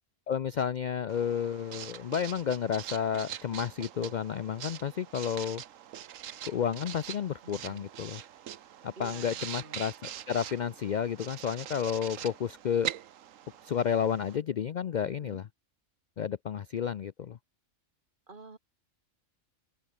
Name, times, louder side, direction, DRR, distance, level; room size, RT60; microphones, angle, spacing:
voice 1, 0.3-5.6 6.4-8.2 8.8-12.9 13.6-15.4 16.2-17.4, left 8 dB, 70° left, 0.4 m, -31 dB
Writing, 1.1-14.4, right 10 dB, 75° right, 1.2 m, -43 dB
voice 2, 7.4-7.9 9.0-9.9 15.0-15.4 18.3-18.6, right 3 dB, 40° right, 2.0 m, -49 dB
omnidirectional pair, 1.4 m